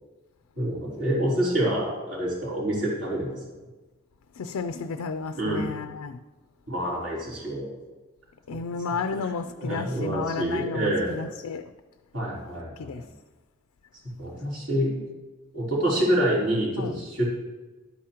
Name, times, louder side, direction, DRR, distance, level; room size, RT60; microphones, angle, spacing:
voice 1, 0.6-3.4 5.4-5.7 6.7-7.7 9.1-11.1 12.1-13.0 14.2-14.9 15.5-17.2, right 1 dB, 60° right, 3.5 m, -27 dB
voice 2, 4.4-6.2 8.5-11.6 12.8-13.1 16.8-17.0, left 4 dB, 85° left, 0.4 m, -32 dB
12.0 x 8.5 x 2.9 m
head